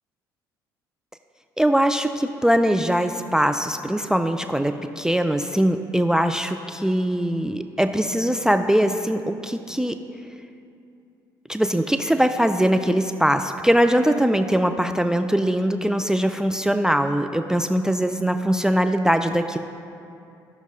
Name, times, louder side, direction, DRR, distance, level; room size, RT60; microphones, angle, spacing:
voice 1, 1.6-9.9 11.5-19.6, equal, 5° right, 8 dB, 0.4 m, -21 dB
16.0 x 5.9 x 2.7 m, 2.6 s
hypercardioid pair, 55°, 11 cm